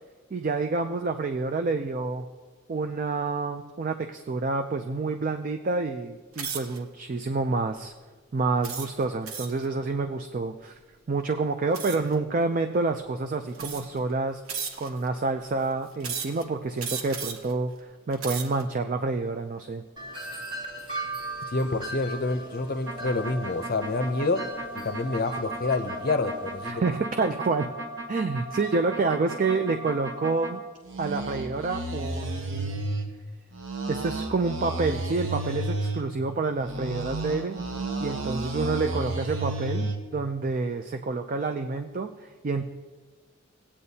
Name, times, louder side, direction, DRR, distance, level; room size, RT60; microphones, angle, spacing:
voice 1, 0.3-2.2 2.7-7.9 8.3-10.8 11.1-14.4 14.8-19.8 26.6-27.7 28.1-30.6 31.0-32.8 33.9-37.6 38.0-42.7, right 3 dB, 40° right, 7 dB, 0.4 m, -28 dB
sound 1, 6.3-6.8 7.4-7.7 8.6-9.7 11.7-12.1 13.0-13.1 13.5-14.0 14.5-15.1 16.0-16.4 16.8-17.5 18.0-18.6, right 6 dB, 85° right, 0.9 m, -35 dB
Wind chime, 20.0-26.7, right 2 dB, 20° right, 1.3 m, -39 dB
voice 2, 21.5-24.4 24.7-26.8, left 3 dB, 45° left, 8 dB, 0.6 m, -28 dB
sound 2, 22.9-30.5 30.8-33.1 33.5-36.0 36.6-40.0, right 2 dB, 60° right, 1.0 m, -33 dB
18.0 x 8.6 x 2.8 m, 1.3 s
head